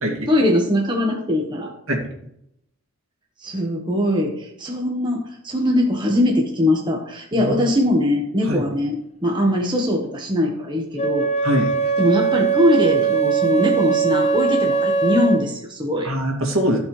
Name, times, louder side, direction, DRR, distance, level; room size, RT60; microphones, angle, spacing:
voice 1, 0.3-1.7 3.4-11.3 12.0-16.1, left 1 dB, 20° right, 0 dB, 1.2 m, -21 dB
Wind instrument woodwind instrument, 11.0-15.5, right 6 dB, 30° left, 0.8 m, -20 dB
voice 2, 11.4-11.7 16.0-16.8, equal, 65° right, 1 dB, 2.3 m, -22 dB
15.5 x 5.6 x 3.2 m, 0.77 s
head